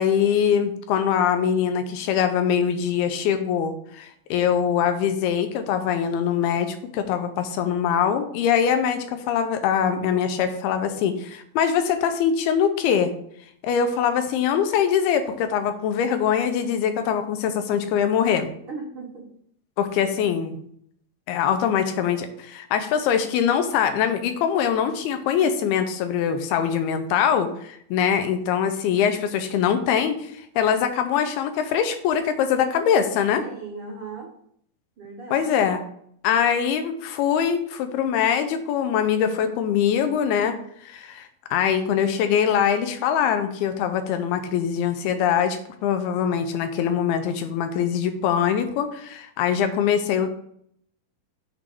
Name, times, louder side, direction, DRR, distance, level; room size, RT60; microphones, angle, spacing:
voice 1, 0.0-13.1 13.6-18.5 19.8-20.6 21.3-33.4 35.3-35.8 36.2-40.5 40.8-50.3, left 8 dB, 80° left, 8 dB, 2.7 m, -23 dB
voice 2, 18.6-19.3 33.4-34.3 35.0-35.6, right 4 dB, 75° right, -3 dB, 1.2 m, -37 dB
7.1 x 3.8 x 6.5 m, 0.67 s
omnidirectional pair, 4.5 m